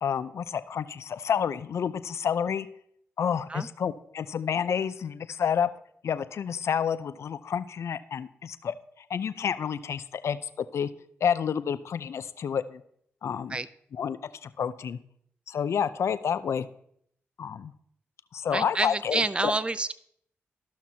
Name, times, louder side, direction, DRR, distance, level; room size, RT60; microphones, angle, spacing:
voice 1, 0.0-2.7 3.2-5.7 6.0-8.7 9.1-10.9 11.2-12.8 13.2-13.6 13.9-15.0 15.5-16.7 17.4-17.7 18.3-19.5, left 7 dB, 70° left, 13 dB, 0.5 m, -29 dB
voice 2, 18.5-19.9, right 3 dB, 20° right, 15 dB, 0.4 m, -28 dB
14.0 x 5.9 x 2.8 m, 0.68 s
supercardioid pair, 45°, 5 cm